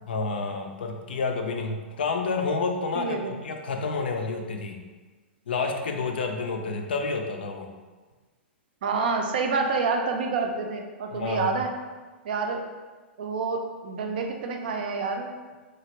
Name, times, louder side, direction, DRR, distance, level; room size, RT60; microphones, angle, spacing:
voice 1, 0.1-3.2 3.4-4.8 5.5-7.7 11.1-11.5, left 4 dB, 60° left, 3 dB, 0.4 m, -29 dB
voice 2, 3.0-3.3 8.8-11.7 12.2-12.6 13.2-15.3, right 4 dB, 55° right, 3 dB, 0.4 m, -28 dB
3.0 x 2.4 x 3.1 m, 1.3 s
figure-of-eight pair, 105°, 6 cm